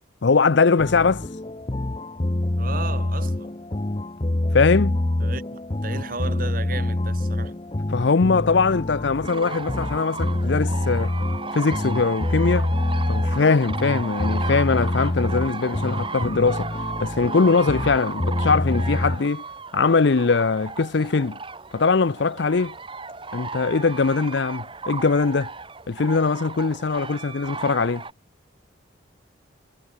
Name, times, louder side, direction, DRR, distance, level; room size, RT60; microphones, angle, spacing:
voice 1, 0.2-1.3 4.5-5.0 7.9-11.1 11.5-12.7 13.1-16.7 17.0-19.4 19.7-21.4 21.7-22.8 23.3-25.5 25.9-28.0, left 4 dB, 65° left, 0.6 m, -21 dB
sound 1, 0.8-19.2, left 1 dB, 25° left, 0.7 m, -26 dB
voice 2, 2.6-3.5 5.2-7.5, right 3 dB, 45° right, 1.1 m, -34 dB
sound 2, 9.2-28.1, right 4 dB, 25° right, 2.2 m, -35 dB
head